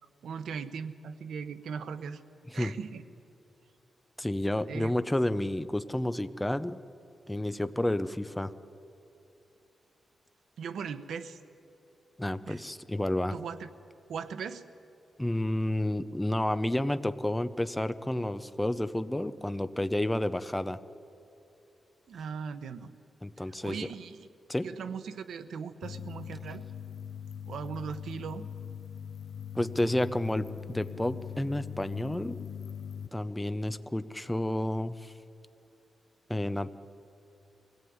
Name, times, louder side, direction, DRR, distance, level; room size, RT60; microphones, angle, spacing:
voice 1, 0.2-2.2 2.5-3.0 4.7-4.9 10.6-11.4 12.5-12.6 13.3-13.7 14.1-14.6 22.1-22.9 23.4-24.2 24.6-26.6 27.4-28.5, right 6 dB, 85° right, 11 dB, 1.1 m, -39 dB
voice 2, 4.2-6.8 7.3-8.5 12.2-13.4 15.2-20.8 23.2-23.9 24.5-24.7 29.5-32.4 33.1-35.1 36.3-36.7, left 1 dB, 5° left, 12 dB, 0.6 m, -30 dB
sound 1, 25.8-33.1, left 8 dB, 80° left, 0.7 m, -41 dB
24.0 x 18.0 x 9.5 m, 2.8 s
wide cardioid pair, 175°, 0 cm